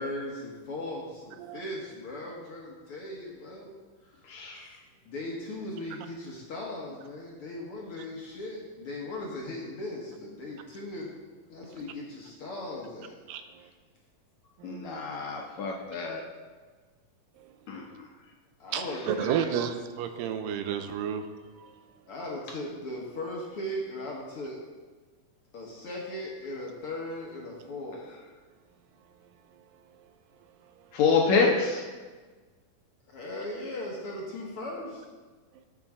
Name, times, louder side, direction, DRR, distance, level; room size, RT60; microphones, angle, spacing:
voice 1, 0.0-3.8 4.2-4.7 5.0-11.2 11.5-13.1 18.6-19.6 22.1-24.6 25.5-28.0 33.1-35.1, left 1 dB, 55° left, -2 dB, 1.7 m, -38 dB
voice 2, 4.3-4.7 14.6-16.2 17.7-18.0 30.9-31.8, left 4 dB, 70° left, 1 dB, 1.9 m, -27 dB
voice 3, 13.3-13.7 14.6-15.1 17.4-17.5 18.7-21.3 21.6-21.7, right 8 dB, 85° right, 8 dB, 2.4 m, -32 dB
14.0 x 7.4 x 3.6 m, 1.4 s
omnidirectional pair, 3.9 m